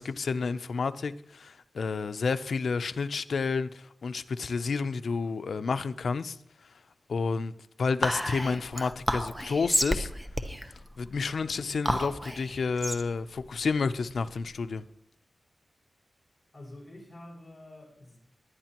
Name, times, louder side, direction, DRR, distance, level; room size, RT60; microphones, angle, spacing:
voice 1, 0.0-6.7 7.1-7.5 7.8-10.1 11.0-14.8, left 4 dB, 80° left, 0.5 m, -30 dB
Whispering, 8.0-14.7, equal, 10° right, 0.9 m, -32 dB
voice 2, 16.5-18.2, left 1 dB, 20° left, 5.5 m, -47 dB
20.0 x 11.0 x 3.0 m
wide cardioid pair, 110°, 0 cm